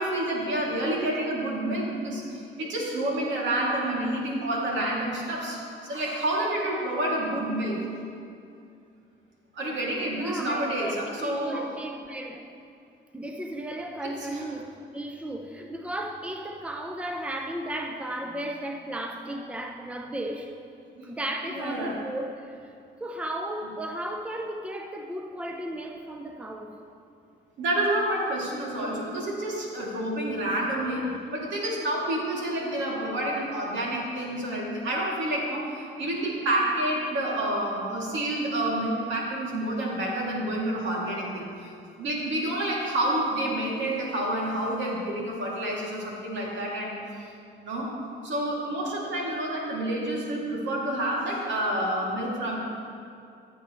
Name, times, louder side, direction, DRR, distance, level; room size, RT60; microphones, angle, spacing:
voice 1, 0.0-7.7 9.5-11.6 14.0-14.5 21.0-21.1 21.5-22.0 27.6-31.1 31.3-41.7 42.0-47.0 47.6-47.9 48.2-52.6, right 1 dB, 70° right, -4 dB, 2.6 m, -29 dB
voice 2, 10.1-12.5 13.1-20.5 21.0-22.7 23.0-26.8, right 1 dB, 5° right, 3 dB, 0.7 m, -35 dB
15.0 x 8.3 x 3.1 m, 2.5 s
cardioid pair, 90°, 20 cm